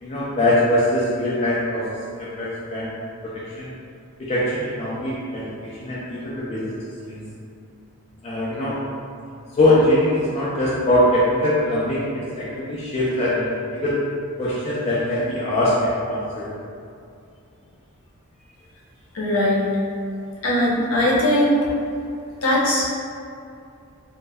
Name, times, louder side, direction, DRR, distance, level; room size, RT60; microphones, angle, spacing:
voice 1, 0.0-2.9 3.5-3.7 4.2-5.5 5.8-6.7 7.0-7.2 8.2-8.8 9.6-14.0 14.4-16.5, left 1 dB, 30° left, -8 dB, 0.3 m, -22 dB
voice 2, 19.1-19.7 20.4-21.6 22.4-22.9, left 1 dB, 65° left, -5 dB, 0.6 m, -19 dB
2.1 x 2.1 x 3.3 m, 2.5 s
head